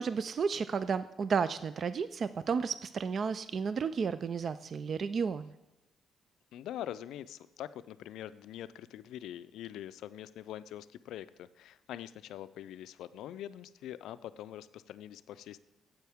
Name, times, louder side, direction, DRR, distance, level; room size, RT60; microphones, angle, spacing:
voice 1, 0.0-5.5, right 5 dB, 50° right, 14 dB, 0.3 m, -32 dB
voice 2, 6.5-15.6, left 11 dB, 85° left, 15 dB, 0.3 m, -44 dB
9.2 x 7.8 x 3.5 m, 0.96 s
cardioid pair, 90°, 0 cm